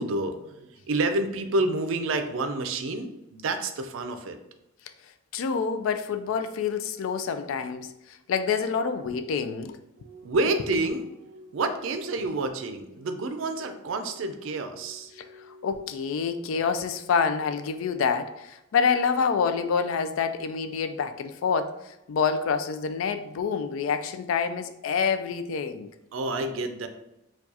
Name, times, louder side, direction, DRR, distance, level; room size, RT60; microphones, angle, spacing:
voice 1, 0.0-4.4 10.0-15.7 26.1-26.9, right 2 dB, 80° right, 0.4 m, -29 dB
voice 2, 5.3-7.9 8.3-9.8 15.6-21.7 22.1-25.9, left 6 dB, 85° left, 0.3 m, -27 dB
4.5 x 2.3 x 2.7 m
head